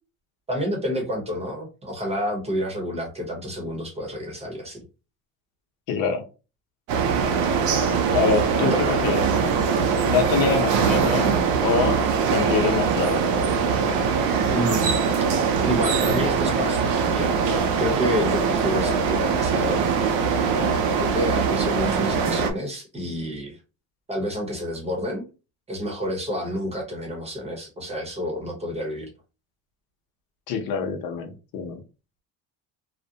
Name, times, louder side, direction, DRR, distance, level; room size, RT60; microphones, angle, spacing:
voice 1, 0.5-4.8 8.6-9.4 14.4-15.0 15.6-19.8 20.4-23.6 24.1-25.2 25.7-29.1, equal, 15° right, 1 dB, 0.8 m, -29 dB
voice 2, 5.9-6.2 8.1-9.2 10.0-11.3 11.6-12.0 12.3-13.2 30.5-31.8, left 6 dB, 70° left, 4 dB, 0.8 m, -25 dB
sound 1, 6.9-22.5, right 6 dB, 85° right, 0.6 m, -22 dB
2.5 x 2.1 x 2.7 m, 0.31 s
cardioid pair, 140°, 35 cm